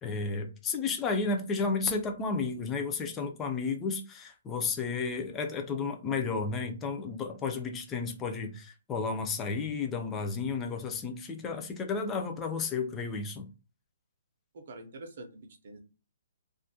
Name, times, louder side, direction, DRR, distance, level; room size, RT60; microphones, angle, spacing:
voice 1, 0.0-13.5, left 4 dB, 10° left, 4 dB, 0.3 m, -32 dB
voice 2, 14.5-15.8, right 2 dB, 45° right, 6 dB, 0.5 m, -46 dB
2.3 x 2.1 x 2.6 m, 0.32 s
hypercardioid pair, 175°, 0 cm